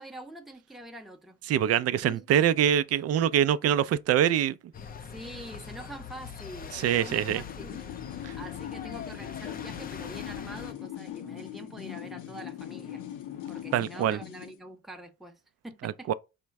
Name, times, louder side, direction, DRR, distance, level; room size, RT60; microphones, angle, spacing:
voice 1, 0.0-1.4 2.0-2.2 5.1-7.9 8.2-13.0 13.5-16.1, right 1 dB, ahead, 0.7 m, -45 dB
voice 2, 1.5-4.5 6.7-7.4 8.2-8.3 13.7-14.2 15.8-16.1, right 10 dB, 55° right, 0.4 m, -24 dB
sound 1, 4.7-10.7, left 6 dB, 30° left, 0.4 m, -42 dB
sound 2, 7.1-14.6, left 11 dB, 90° left, 0.7 m, -40 dB
4.3 x 2.1 x 4.6 m
cardioid pair, 90°, 30 cm